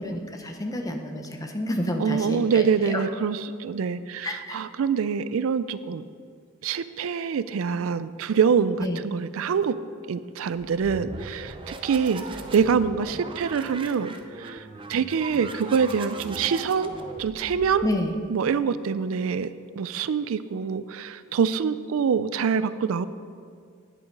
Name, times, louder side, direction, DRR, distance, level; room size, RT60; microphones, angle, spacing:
voice 1, 0.0-3.0 4.2-4.6 8.8-9.0 17.8-18.1, left 1 dB, 15° left, 4 dB, 0.8 m, -29 dB
voice 2, 2.0-6.0 6.6-9.8 10.1-14.6 14.9-16.9 17.2-17.8 18.3-19.5 19.8-23.1, right 6 dB, 80° right, 14 dB, 0.4 m, -25 dB
sound 1, 10.6-18.2, right 3 dB, 25° right, 0.5 m, -39 dB
9.7 x 7.8 x 5.3 m, 2.1 s
head